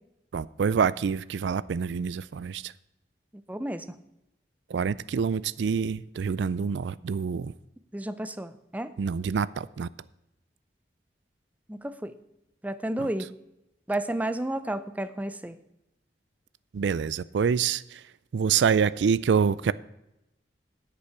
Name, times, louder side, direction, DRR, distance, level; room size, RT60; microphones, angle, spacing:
voice 1, 0.3-2.7 4.7-7.5 9.0-9.9 13.0-13.1 16.7-18.0 18.3-19.7, right 6 dB, 80° right, 0.4 m, -26 dB
voice 2, 3.5-3.9 7.9-8.9 11.7-12.1 12.6-13.3 13.9-15.6, right 1 dB, 10° right, 0.5 m, -31 dB
9.9 x 8.3 x 5.8 m
head